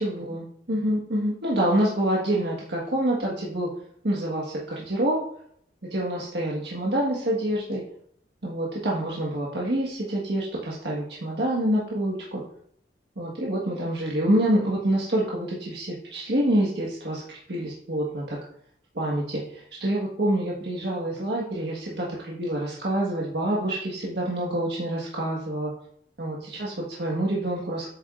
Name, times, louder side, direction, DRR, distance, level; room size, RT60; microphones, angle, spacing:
voice 1, 0.0-3.7 4.0-5.2 5.8-7.8 8.4-12.4 13.2-17.2 17.5-18.4 18.9-25.7 26.2-27.9, right 1 dB, 70° right, -4 dB, 1.6 m, -27 dB
8.9 x 7.9 x 2.5 m, 0.66 s
head